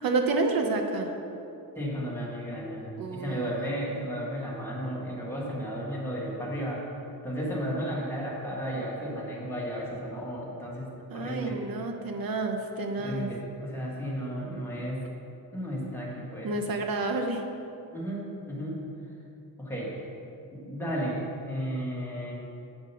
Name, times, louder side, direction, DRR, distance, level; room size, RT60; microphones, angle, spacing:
voice 1, 0.0-1.1 3.0-3.6 11.1-13.3 16.4-17.4, right 3 dB, 65° right, 4 dB, 0.9 m, -29 dB
voice 2, 1.7-6.8 7.2-11.6 13.0-15.0 15.5-16.5 17.9-18.8 19.6-19.9 20.5-22.3, equal, 5° left, -6 dB, 1.6 m, -34 dB
8.2 x 5.2 x 5.5 m, 2.7 s
wide cardioid pair, 170°, 38 cm